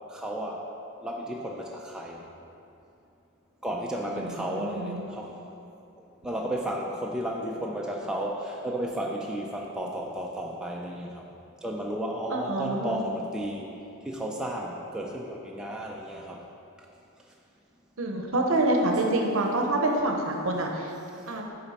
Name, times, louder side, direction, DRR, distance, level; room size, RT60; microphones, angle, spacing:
voice 1, 0.1-0.7 1.0-2.2 3.6-5.4 6.0-11.3 11.6-16.5 18.1-18.5, right 1 dB, 5° right, -2 dB, 0.3 m, -33 dB
voice 2, 4.1-5.0 12.3-13.0 18.0-20.9 21.3-21.4, right 2 dB, 65° right, 2 dB, 0.7 m, -27 dB
7.0 x 4.1 x 4.1 m, 2.7 s
head